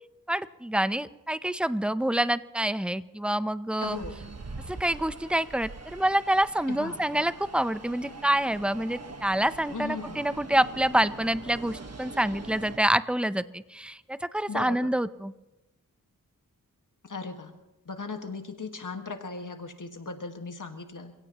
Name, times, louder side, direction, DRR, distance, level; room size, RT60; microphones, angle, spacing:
voice 1, 0.3-4.0 4.7-15.3, right 1 dB, 5° right, 14 dB, 0.7 m, -27 dB
voice 2, 3.8-4.2 6.7-7.0 9.7-10.2 14.5-14.9 17.0-17.5 17.9-21.1, left 4 dB, 65° left, 5 dB, 1.8 m, -37 dB
sound 1, 3.8-12.8, right 3 dB, 45° right, 1.5 m, -43 dB
28.0 x 17.0 x 3.0 m, 1.0 s
cardioid pair, 45°, 34 cm